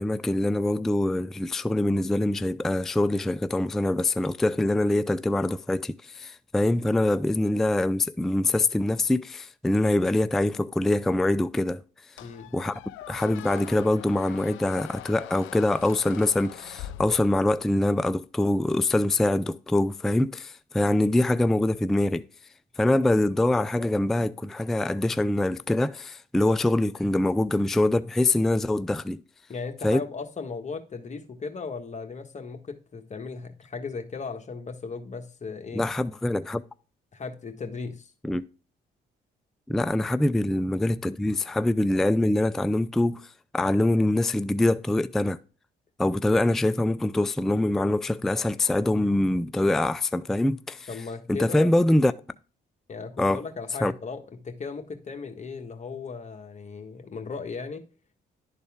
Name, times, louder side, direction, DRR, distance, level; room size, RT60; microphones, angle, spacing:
voice 1, 0.0-11.8 12.5-12.7 13.1-22.3 22.8-29.2 29.8-30.0 35.7-36.6 38.2-38.4 39.7-45.4 46.0-50.9 51.3-52.1 53.2-53.4 53.8-53.9, left 1 dB, ahead, 0.3 m, -24 dB
Squeak, 12.2-17.7, left 13 dB, 80° left, 0.5 m, -42 dB
voice 2, 12.2-12.5 29.5-35.8 37.1-38.1 50.9-51.7 52.9-54.2 54.4-57.8, left 4 dB, 35° left, 1.4 m, -37 dB
11.0 x 4.1 x 3.5 m
cardioid pair, 90°, 20 cm